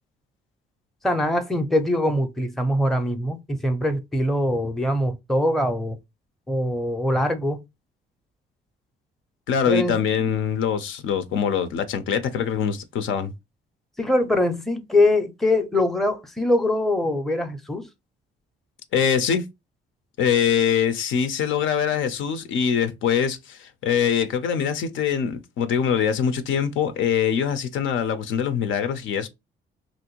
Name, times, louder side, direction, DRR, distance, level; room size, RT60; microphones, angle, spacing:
voice 1, 1.0-6.0 6.5-7.6 9.7-10.2 14.0-17.9, left 1 dB, ahead, 0.6 m, -23 dB
voice 2, 9.5-13.3 18.9-19.4 20.2-29.3, left 8 dB, 75° left, 0.6 m, -23 dB
3.1 x 2.6 x 2.9 m
cardioid pair, 90°, 20 cm